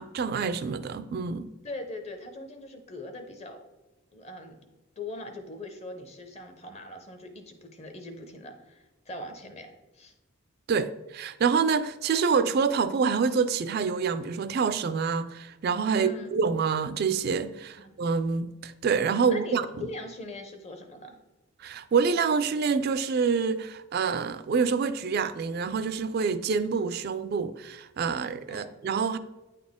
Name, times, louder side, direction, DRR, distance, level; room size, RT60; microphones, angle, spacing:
voice 1, 0.0-1.5 10.7-19.9 21.6-29.2, right 5 dB, 50° right, 12 dB, 0.3 m, -27 dB
voice 2, 1.6-3.6 4.1-4.7 5.0-10.1 15.9-16.4 17.8-18.0 19.3-21.2 28.5-28.7, left 1 dB, 30° left, 7 dB, 0.7 m, -41 dB
9.0 x 4.1 x 3.6 m, 1.1 s
head